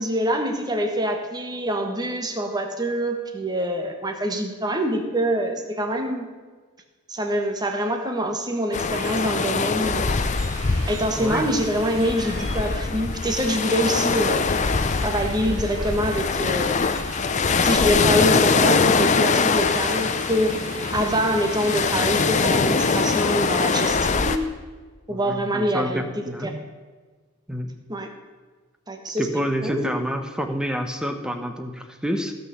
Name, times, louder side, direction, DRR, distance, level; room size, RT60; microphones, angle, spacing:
voice 1, 0.0-6.3 7.1-10.2 10.9-14.5 15.0-16.8 17.6-20.6 20.9-24.5 25.1-26.6 27.9-28.1 28.9-29.3 29.6-29.9, equal, 20° right, 4 dB, 1.4 m, -25 dB
sound 1, 8.7-24.4, left 4 dB, 35° left, 0.6 m, -23 dB
sound 2, 8.9-24.5, right 4 dB, 65° right, 1.8 m, -41 dB
voice 2, 11.2-11.5 25.1-26.5 27.5-27.7 29.2-32.3, equal, 5° right, 6 dB, 1.0 m, -28 dB
16.0 x 6.6 x 6.9 m, 1.4 s
head